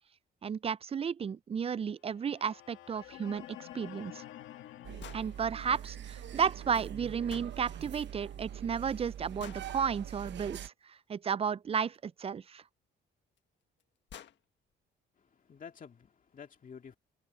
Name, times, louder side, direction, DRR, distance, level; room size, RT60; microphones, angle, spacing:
voice 1, 0.4-4.2 5.1-12.6, right 7 dB, 30° right, 0.4 m, -33 dB
sound 1, 2.1-10.2, left 13 dB, 85° left, 2.3 m, -53 dB
sound 2, 4.8-10.7, right 10 dB, 65° right, 1.0 m, -43 dB
sound 3, 5.0-5.3 7.3-7.5 9.4-9.7 11.9-12.0 13.4-13.5 13.8-13.9 14.1-14.4, left 10 dB, 65° left, 1.6 m, -48 dB
voice 2, 15.1-17.0, left 6 dB, 45° left, 2.2 m, -50 dB
cardioid pair, 90°, 20 cm